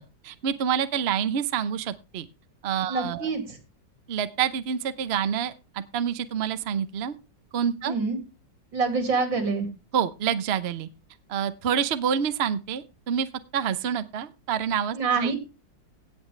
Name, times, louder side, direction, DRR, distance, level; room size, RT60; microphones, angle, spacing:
voice 1, 0.0-2.3 2.6-3.3 4.1-5.5 5.9-7.1 7.5-7.9 9.9-10.9 11.3-13.3 13.5-15.3, right 8 dB, 50° right, 12 dB, 0.8 m, -27 dB
voice 2, 2.9-3.6 7.8-8.2 8.7-9.7 14.9-15.4, right 4 dB, 85° right, 5 dB, 3.3 m, -26 dB
17.0 x 7.4 x 3.3 m, 0.28 s
omnidirectional pair, 2.0 m